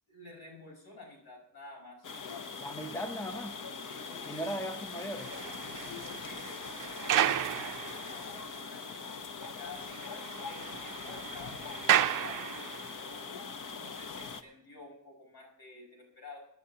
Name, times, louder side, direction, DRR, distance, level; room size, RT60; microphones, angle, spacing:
voice 1, 0.1-2.1 3.8-4.5 5.7-16.5, left 3 dB, 75° left, -1 dB, 5.6 m, -51 dB
sound 1, 2.0-14.4, left 5 dB, 55° left, 0.9 m, -42 dB
voice 2, 2.6-3.5 4.3-5.3, equal, 5° left, 7 dB, 0.7 m, -37 dB
sound 2, 4.9-8.6 9.0-9.1 9.4-9.5 9.8-13.1 13.7-13.9, right 11 dB, 55° right, 0.5 m, -33 dB
24.5 x 10.5 x 2.8 m, 0.81 s
wide cardioid pair, 170°, 38 cm